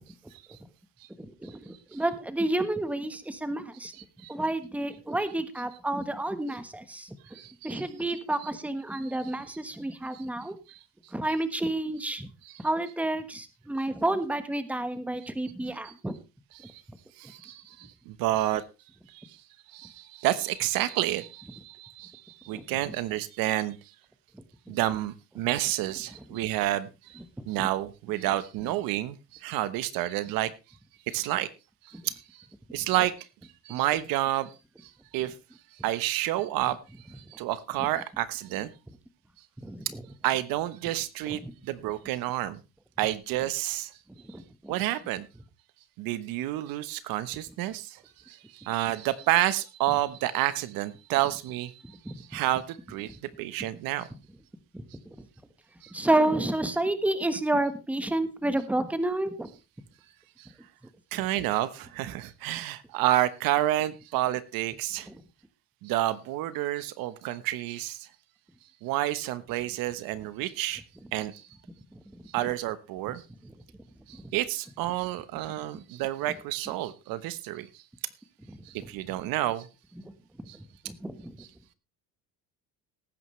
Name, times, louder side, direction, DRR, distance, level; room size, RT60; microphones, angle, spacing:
voice 1, 1.2-3.9 4.3-7.1 7.6-10.6 11.1-12.3 12.6-16.1 22.5-22.6 24.7-24.8 27.4-27.7 31.9-32.0 39.6-40.0 41.4-41.5 44.2-44.7 52.0-52.1 54.7-54.9 55.9-59.5 65.1-65.2 71.9-72.0 73.4-73.5 78.5-78.6 80.5-81.4, right 1 dB, 5° right, 10 dB, 1.3 m, -30 dB
voice 2, 7.3-7.8 10.1-10.2 10.7-10.8 16.6-16.8 17.2-18.6 19.1-19.4 19.7-23.8 24.7-27.2 27.5-30.5 31.1-31.5 31.8-32.4 32.7-33.3 33.6-34.5 35.1-35.3 35.8-36.8 37.2-38.7 40.2-42.6 43.0-43.9 44.7-45.3 46.0-48.0 48.3-51.8 52.2-54.1 55.8-55.9 60.4-60.5 61.1-65.1 65.8-68.1 68.8-70.8 71.1-71.4 72.3-73.2 74.1-77.8 78.6-79.7 80.5-80.6, right 14 dB, 70° right, 14 dB, 1.1 m, -29 dB
18.5 x 9.4 x 3.2 m, 0.28 s
cardioid pair, 130°, 36 cm